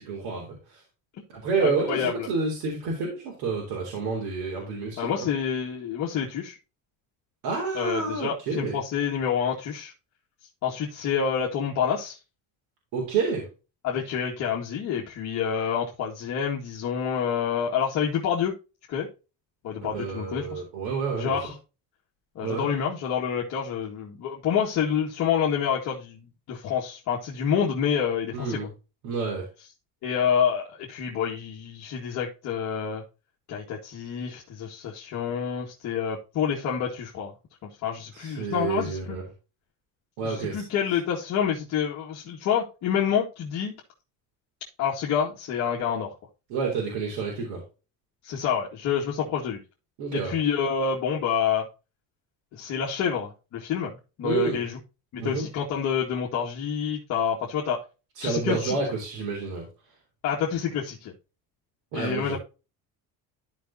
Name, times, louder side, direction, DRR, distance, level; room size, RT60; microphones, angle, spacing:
voice 1, 0.1-0.8 1.3-5.3 7.4-8.8 12.9-13.5 19.9-21.4 22.4-22.7 28.3-28.7 29.0-29.5 38.1-39.3 40.2-40.6 46.5-47.6 50.0-50.3 54.2-54.6 55.2-55.5 58.2-59.7 61.9-62.4, right 4 dB, 90° right, -1 dB, 3.9 m, -29 dB
voice 2, 1.6-2.3 5.0-6.6 7.7-9.9 10.6-12.2 13.8-18.5 18.9-19.1 19.6-20.6 21.2-21.5 22.4-26.2 26.5-28.6 30.0-33.0 33.5-37.3 37.6-39.2 40.2-43.8 44.8-46.1 48.2-49.6 50.1-51.7 52.5-53.9 54.2-54.8 55.1-57.8 58.2-58.8 60.2-61.1 61.9-62.4, left 7 dB, 50° left, -3 dB, 2.0 m, -28 dB
13.5 x 5.4 x 2.8 m, 0.31 s
cardioid pair, 165°, 36 cm